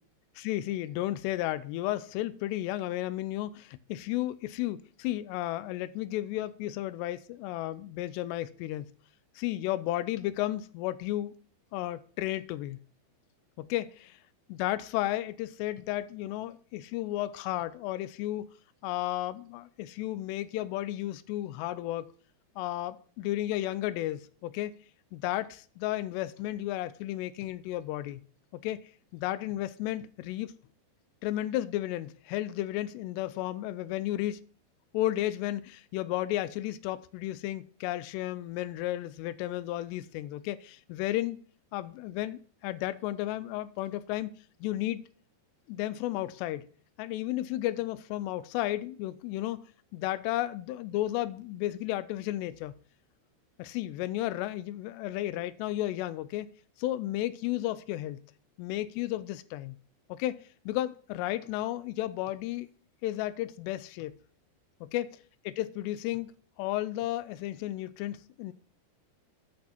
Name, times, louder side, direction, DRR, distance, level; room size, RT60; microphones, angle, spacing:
voice 1, 0.4-8.9 9.4-11.3 11.7-12.8 13.6-14.2 14.5-18.5 18.8-22.1 22.6-24.7 25.1-28.2 28.5-28.8 29.1-30.5 31.2-34.4 34.9-41.4 41.7-44.4 44.6-45.0 45.7-46.7 47.0-49.6 49.9-52.8 53.6-56.5 56.8-58.2 58.6-59.8 60.1-60.4 60.7-62.7 63.0-64.2 64.8-65.2 65.5-66.3 66.6-68.5, left 15 dB, 85° left, 2.7 m, -33 dB
8.6 x 6.2 x 7.1 m
omnidirectional pair, 4.8 m